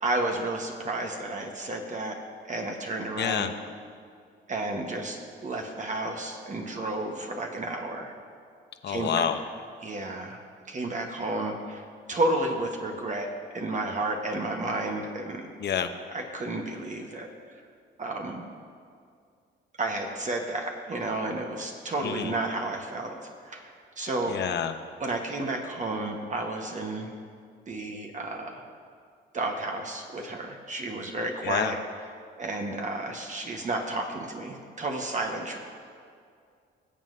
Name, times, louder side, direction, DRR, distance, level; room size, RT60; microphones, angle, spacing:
voice 1, 0.0-2.2 2.5-3.5 4.5-8.1 8.9-9.3 9.8-10.4 10.7-15.4 16.1-17.3 18.0-18.5 19.8-23.2 23.4-24.4 25.0-27.1 27.7-28.6 29.3-31.8 32.4-35.6, right 2 dB, 40° right, 2 dB, 1.2 m, -32 dB
voice 2, 3.2-3.5 8.8-9.4 15.6-15.9 22.0-22.3 24.3-24.7 31.4-31.7, left 8 dB, 60° left, 8 dB, 0.8 m, -28 dB
21.5 x 7.3 x 2.7 m, 2.3 s
cardioid pair, 90°, 20 cm